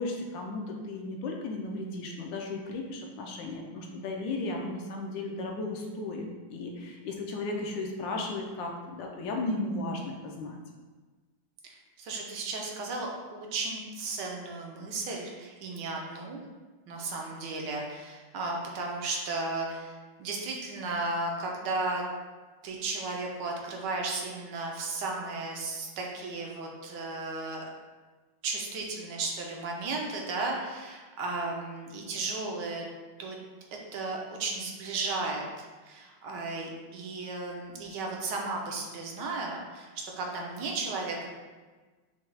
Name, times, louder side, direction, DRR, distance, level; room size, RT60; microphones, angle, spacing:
voice 1, 0.0-10.6, left 2 dB, 75° left, 1 dB, 1.3 m, -35 dB
voice 2, 12.0-16.4 16.9-19.9 20.2-22.0 22.6-27.6 28.4-32.8 33.2-33.4 33.9-35.5 35.8-39.9 40.2-41.3, right 3 dB, 70° right, 0 dB, 1.3 m, -34 dB
5.8 x 2.3 x 3.2 m, 1.3 s
omnidirectional pair, 2.1 m